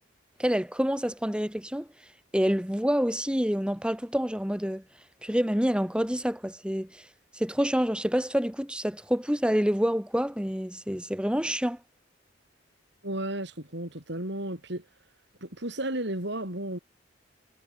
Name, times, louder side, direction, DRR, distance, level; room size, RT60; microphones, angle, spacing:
voice 1, 0.4-1.9 2.3-4.8 5.2-7.0 7.3-11.8, equal, 5° right, 2.0 m, -27 dB
voice 2, 13.0-14.8 15.4-16.8, right 1 dB, 60° right, 6.7 m, -33 dB
head